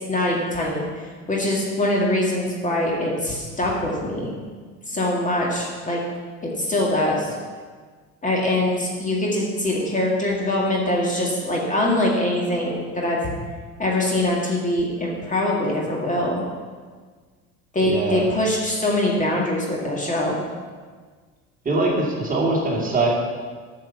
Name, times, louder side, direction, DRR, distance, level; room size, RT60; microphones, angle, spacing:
voice 1, 0.1-0.8 1.3-4.4 4.9-6.0 6.4-7.3 8.2-13.2 13.8-16.4 17.7-20.4, left 1 dB, 15° left, -2 dB, 2.1 m, -23 dB
voice 2, 17.8-18.3 21.6-23.1, right 2 dB, 20° right, -2 dB, 2.3 m, -22 dB
9.1 x 6.7 x 7.0 m, 1.5 s
figure-of-eight pair, 70°, 43 cm